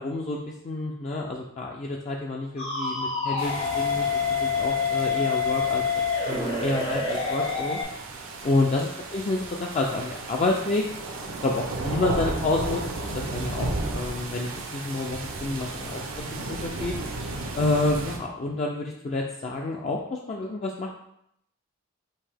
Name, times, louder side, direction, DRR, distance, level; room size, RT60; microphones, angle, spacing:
voice 1, 0.0-4.1 4.4-5.8 6.3-7.8 8.4-8.9 9.1-10.8 11.4-12.8 13.1-16.0 16.3-16.9 17.6-21.0, left 2 dB, 35° left, -1 dB, 0.3 m, -28 dB
sound 1, 2.6-7.8, left 5 dB, 90° left, 1.7 m, -27 dB
sound 2, 3.4-18.2, right 2 dB, 80° right, 0.7 m, -34 dB
5.5 x 2.7 x 3.4 m, 0.76 s
head